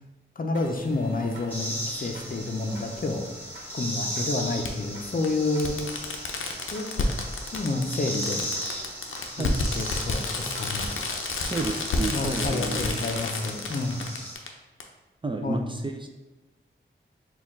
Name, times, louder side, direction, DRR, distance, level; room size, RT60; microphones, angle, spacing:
voice 1, 0.4-3.3 3.7-6.1 6.7-7.1 7.5-8.4 9.4-10.9 12.1-14.1 15.4-15.7, left 2 dB, 45° left, 3 dB, 0.6 m, -29 dB
sound 1, 0.5-14.0, right 1 dB, 65° right, 1.1 m, -48 dB
Fireworks, 1.3-1.4 2.9-3.0 4.6-4.7 5.2-5.3 5.6-14.5 14.8-14.9, left 3 dB, 90° left, 0.5 m, -30 dB
sound 2, 1.5-14.3, equal, 10° left, 1.4 m, -37 dB
voice 2, 11.4-12.9 15.2-16.1, right 3 dB, 25° right, 4 dB, 0.4 m, -31 dB
4.2 x 2.3 x 3.7 m, 1.1 s
cardioid pair, 55°, 20 cm